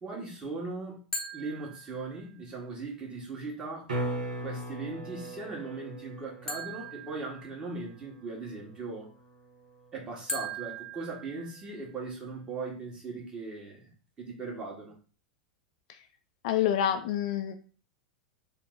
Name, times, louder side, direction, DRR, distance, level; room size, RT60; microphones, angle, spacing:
voice 1, 0.0-1.0 1.3-3.9 4.4-9.1 9.9-13.9 14.2-14.9, right 3 dB, 20° right, -2 dB, 1.5 m, -39 dB
sound 1, 1.1-2.4 6.5-8.0 10.3-12.0, right 1 dB, 10° left, 0.9 m, -40 dB
sound 2, 3.9-9.9 14.6-14.7, right 1 dB, 75° right, 0.9 m, -40 dB
voice 2, 16.4-17.6, left 10 dB, 55° left, 7 dB, 0.4 m, -27 dB
3.6 x 2.1 x 3.8 m, 0.38 s
hypercardioid pair, 95°, 4 cm